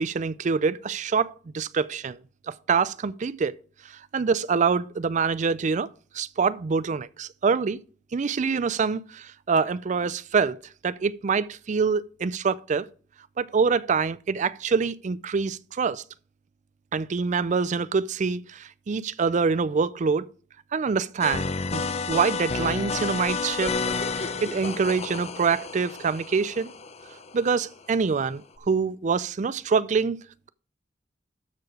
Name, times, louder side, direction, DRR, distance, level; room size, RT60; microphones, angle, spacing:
voice 1, 0.0-2.2 2.5-3.6 3.8-5.9 6.1-7.8 8.1-10.6 10.8-12.9 13.4-16.0 16.9-20.2 20.7-23.7 24.1-26.7 27.3-30.2, right 5 dB, 40° right, 0.4 m, -25 dB
sound 1, 21.2-27.7 28.6-28.7, left 4 dB, 35° left, 0.6 m, -31 dB
12.5 x 4.9 x 4.8 m
head